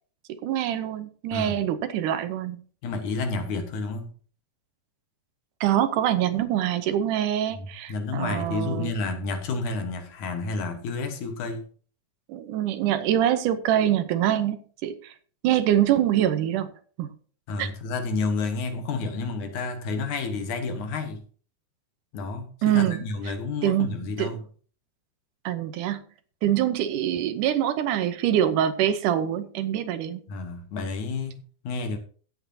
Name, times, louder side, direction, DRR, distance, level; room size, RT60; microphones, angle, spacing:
voice 1, 0.4-2.6 5.6-8.9 12.3-14.6 14.8-15.1 15.4-16.7 17.0-17.1 17.6-17.7 22.6-23.0 23.6-23.9 24.2-24.4 25.5-26.0 26.4-30.2, right 11 dB, 85° right, 2.4 m, -24 dB
voice 2, 2.8-4.1 7.5-11.7 17.5-21.2 22.1-24.4 30.3-32.0, left 3 dB, 75° left, 2.7 m, -30 dB
16.0 x 8.2 x 2.8 m
omnidirectional pair, 3.6 m